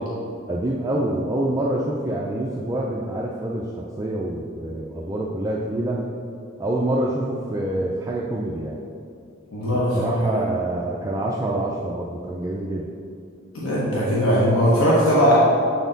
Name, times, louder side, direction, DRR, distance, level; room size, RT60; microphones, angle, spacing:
voice 1, 0.5-6.0 6.6-8.8 9.7-12.9, right 1 dB, 15° right, -4 dB, 0.3 m, -26 dB
voice 2, 9.5-10.4 13.5-15.4, equal, 85° left, -7 dB, 1.1 m, -19 dB
7.2 x 4.1 x 3.9 m, 2.5 s
head